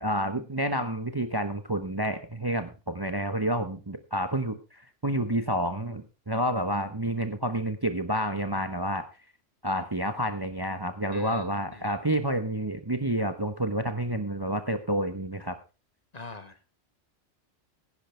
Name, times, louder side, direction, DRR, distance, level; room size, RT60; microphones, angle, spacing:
voice 1, 0.0-9.0 9.6-15.6, right 1 dB, 20° right, 9 dB, 0.9 m, -29 dB
voice 2, 11.1-11.9 16.1-16.6, left 3 dB, 35° left, 9 dB, 1.4 m, -44 dB
16.0 x 10.5 x 3.3 m, 0.30 s
omnidirectional pair, 1.3 m